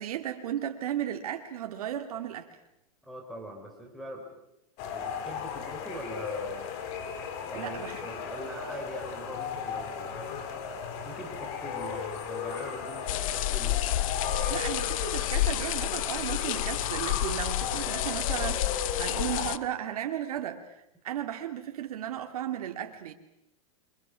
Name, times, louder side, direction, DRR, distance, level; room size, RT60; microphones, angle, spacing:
voice 1, 0.0-2.5 7.5-8.0 14.5-23.1, right 11 dB, 80° right, 2.6 m, -35 dB
voice 2, 3.0-4.3 4.9-6.7 7.5-10.3 11.0-13.8, right 1 dB, ahead, 3.9 m, -42 dB
sound 1, 4.8-19.6, left 7 dB, 50° left, 4.2 m, -36 dB
sound 2, 13.1-19.6, left 14 dB, 65° left, 1.0 m, -30 dB
29.5 x 24.5 x 6.3 m
supercardioid pair, 145°, 19 cm